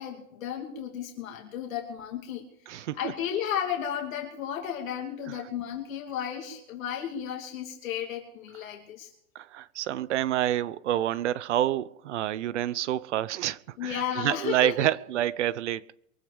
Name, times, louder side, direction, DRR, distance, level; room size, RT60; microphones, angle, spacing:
voice 1, 0.0-2.4 2.7-9.1 13.8-14.9, left 9 dB, 55° left, 2.9 m, -34 dB
voice 2, 2.7-3.1 5.3-5.4 9.3-15.9, right 12 dB, 50° right, 0.7 m, -28 dB
23.5 x 8.9 x 5.0 m
hypercardioid pair, 155°, 48 cm